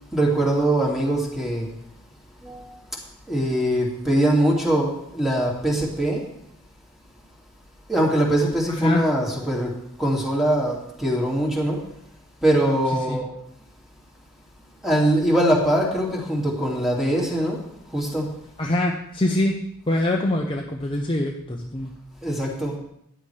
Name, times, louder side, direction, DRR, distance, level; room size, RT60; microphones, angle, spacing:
voice 1, 0.1-1.7 2.4-2.9 3.3-6.2 7.9-9.7 10.0-11.8 12.4-13.3 14.8-17.6 17.9-18.3 22.2-22.8, right 1 dB, ahead, -2 dB, 2.3 m, -22 dB
voice 2, 18.6-19.5 19.9-21.9, left 1 dB, 25° left, 0 dB, 0.7 m, -24 dB
14.0 x 9.9 x 3.3 m, 0.76 s
head